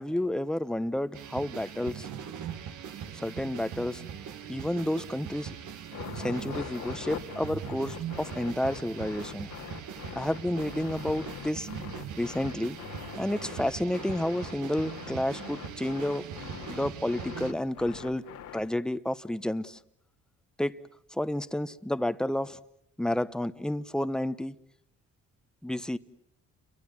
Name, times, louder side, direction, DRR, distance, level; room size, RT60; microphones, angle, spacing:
voice 1, 0.0-2.1 3.2-4.1 4.5-5.5 6.2-9.5 10.2-11.7 12.2-12.8 13.2-16.2 16.7-18.2 18.5-19.8 20.6-20.7 21.1-22.6 23.0-24.5 25.6-26.0, left 1 dB, ahead, 0.9 m, -30 dB
sound 1, 1.1-17.5, right 8 dB, 75° right, 1.9 m, -41 dB
sound 2, 5.9-18.8, left 9 dB, 85° left, 2.5 m, -43 dB
29.5 x 23.0 x 7.4 m
cardioid pair, 90°, 30 cm